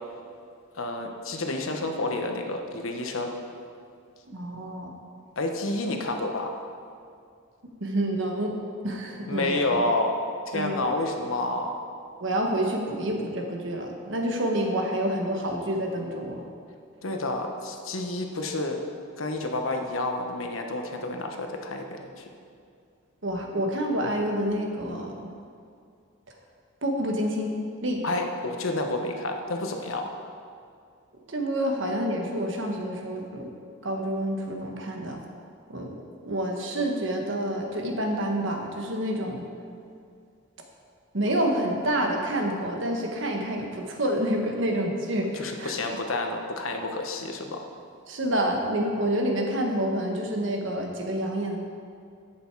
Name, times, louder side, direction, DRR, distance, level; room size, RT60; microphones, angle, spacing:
voice 1, 0.7-3.3 5.4-6.6 9.3-10.1 10.5-11.7 17.0-18.8 19.2-22.2 28.0-30.1 45.3-47.7, left 2 dB, 80° left, 3 dB, 1.1 m, -29 dB
voice 2, 4.3-4.9 7.8-8.5 8.8-9.7 10.5-10.8 12.2-16.4 23.2-25.3 26.8-27.5 27.8-28.0 31.3-33.5 33.8-35.2 35.7-36.0 36.2-39.4 41.1-45.7 48.1-51.6, right 1 dB, 65° right, 2 dB, 1.3 m, -28 dB
10.5 x 7.9 x 4.7 m, 2.4 s
head